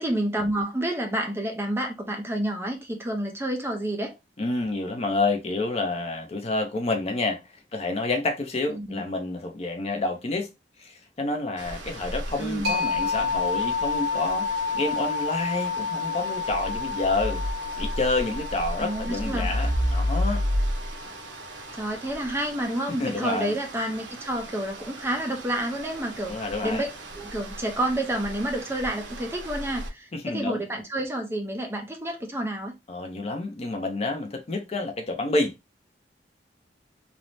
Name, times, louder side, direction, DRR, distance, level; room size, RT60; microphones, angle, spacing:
voice 1, 0.0-4.1 8.7-9.0 12.4-12.7 18.8-19.5 21.7-26.9 27.2-32.7, right 1 dB, 15° right, 0.5 m, -29 dB
voice 2, 4.4-7.4 7.7-10.5 10.8-17.4 17.8-20.4 22.9-23.5 26.3-26.8 30.1-30.6 32.9-35.5, left 2 dB, 35° left, 0.5 m, -28 dB
sound 1, 11.6-29.9, equal, 80° right, 0.7 m, -33 dB
sound 2, 12.6-22.0, left 5 dB, 60° right, 1.3 m, -30 dB
3.1 x 2.0 x 2.6 m
head